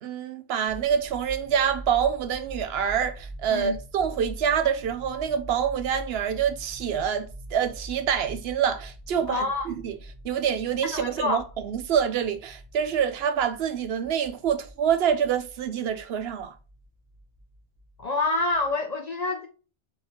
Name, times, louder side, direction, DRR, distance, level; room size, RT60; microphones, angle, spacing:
voice 1, 0.0-10.0 10.2-16.5, right 8 dB, 70° right, 0.8 m, -26 dB
sound 1, 0.7-18.7, right 1 dB, 35° right, 1.2 m, -44 dB
voice 2, 9.3-9.7 10.9-11.4 18.0-19.5, left 2 dB, 50° left, 0.5 m, -27 dB
3.9 x 3.9 x 2.8 m
omnidirectional pair, 1.1 m